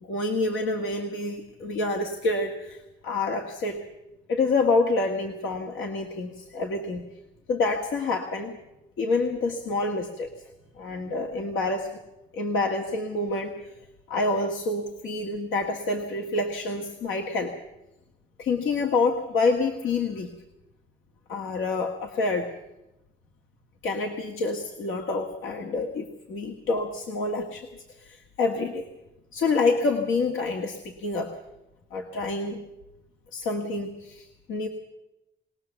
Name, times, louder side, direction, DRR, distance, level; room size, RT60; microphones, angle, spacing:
voice 1, 0.0-3.9 4.3-7.0 7.5-8.6 9.0-10.3 10.8-11.9 12.3-13.6 14.1-17.5 18.4-20.3 21.3-22.5 23.8-28.9 29.3-31.4 31.9-32.6 33.3-34.7, left 3 dB, 85° left, 2 dB, 1.9 m, -27 dB
21.5 x 19.0 x 7.1 m, 0.94 s
cardioid pair, 90°, 20 cm